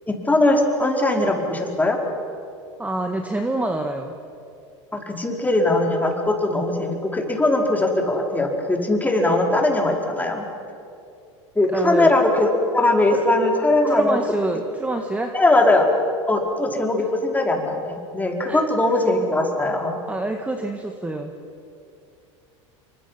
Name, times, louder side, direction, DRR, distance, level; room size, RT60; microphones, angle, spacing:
voice 1, 0.1-2.0 4.9-10.5 11.6-14.2 15.3-15.9 16.3-20.0, left 2 dB, 10° left, 1 dB, 4.4 m, -20 dB
voice 2, 2.8-4.1 11.7-12.2 13.1-13.2 13.9-15.3 18.5-18.6 20.1-21.3, right 2 dB, 10° right, 5 dB, 1.7 m, -26 dB
28.5 x 24.0 x 5.7 m, 2.5 s
hypercardioid pair, 95°, 16 cm